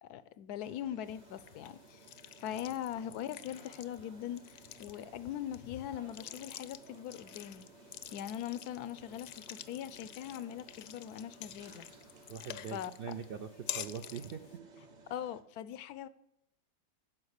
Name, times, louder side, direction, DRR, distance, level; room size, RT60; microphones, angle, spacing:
voice 1, 0.0-2.0 2.4-7.7 8.1-11.9 12.7-13.2 15.1-16.1, left 10 dB, 85° left, 16 dB, 1.1 m, -41 dB
sound 1, 0.6-15.4, right 3 dB, 40° right, 0.7 m, -58 dB
sound 2, 1.1-14.6, left 11 dB, 65° left, 0.8 m, -49 dB
Motorcycle, 3.3-13.1, equal, 60° right, 2.9 m, -63 dB
voice 2, 12.3-14.4, right 7 dB, 85° right, 9 dB, 0.5 m, -42 dB
11.5 x 5.0 x 8.0 m, 0.82 s
omnidirectional pair, 1.6 m